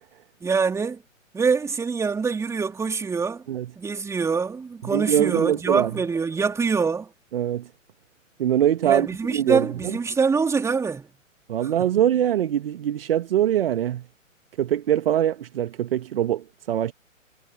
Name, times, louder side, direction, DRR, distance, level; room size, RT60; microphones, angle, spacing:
voice 1, 0.4-1.0 1.3-3.4 3.8-7.1 8.8-11.1 11.8-11.9, right 5 dB, 5° right, 3.4 m, -24 dB
voice 2, 4.8-6.0 7.3-7.7 8.4-10.0 11.5-14.1 14.6-16.9, right 11 dB, 45° right, 2.4 m, -23 dB
figure-of-eight pair, 125°, 40 cm